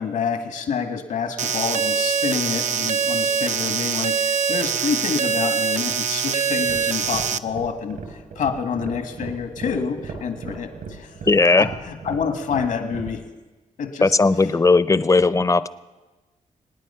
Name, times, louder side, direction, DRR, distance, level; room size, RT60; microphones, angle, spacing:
voice 1, 0.0-8.0 8.4-11.3 11.6-13.2 13.8-14.1, left 6 dB, 80° left, 7 dB, 1.8 m, -27 dB
sound 1, 1.4-7.4, right 6 dB, 65° right, 0.6 m, -23 dB
sound 2, 6.6-13.2, right 4 dB, 80° right, 3.8 m, -37 dB
voice 2, 11.3-11.7 14.0-15.7, left 3 dB, 25° left, 15 dB, 0.6 m, -17 dB
26.0 x 9.6 x 5.7 m, 1.2 s
cardioid pair, 75°, 14 cm